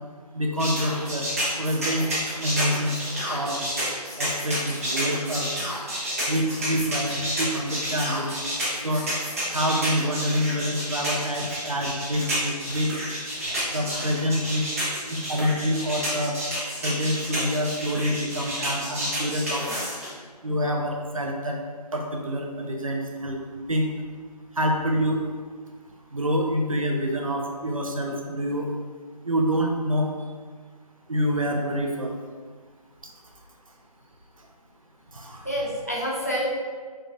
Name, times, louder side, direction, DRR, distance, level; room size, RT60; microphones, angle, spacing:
voice 1, 0.3-1.3 1.6-2.0 2.4-2.9 3.3-3.6 4.2-5.5 6.3-8.3 8.8-9.0 9.5-12.9 13.7-14.6 15.1-16.4 16.8-19.7 20.4-21.6 21.9-23.4 23.7-23.9 24.6-25.2 26.1-28.7 29.2-30.1 31.1-32.1 35.1-35.4, equal, 55° right, 1 dB, 0.6 m, -26 dB
sound 1, 0.6-20.1, equal, 20° right, 1.0 m, -30 dB
voice 2, 13.7-14.3 35.4-36.5, equal, 25° left, -5 dB, 0.5 m, -29 dB
4.7 x 3.1 x 2.6 m, 1.5 s
figure-of-eight pair, 160°, 21 cm